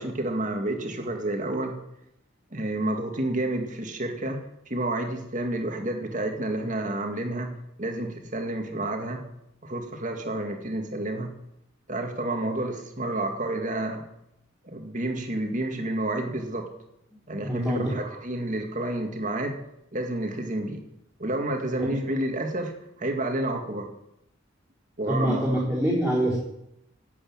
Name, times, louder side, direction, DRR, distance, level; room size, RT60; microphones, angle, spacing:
voice 1, 0.0-1.7 2.5-4.4 4.7-7.5 7.8-9.2 9.6-11.3 11.9-14.0 14.6-16.7 17.3-19.6 19.9-20.8 21.2-22.7 23.0-23.9 25.0-25.4, right 1 dB, 40° right, 3 dB, 2.2 m, -29 dB
voice 2, 17.4-17.9 21.8-21.9 25.1-26.4, right 1 dB, 5° right, -9 dB, 4.2 m, -25 dB
12.0 x 8.6 x 8.8 m, 0.82 s
head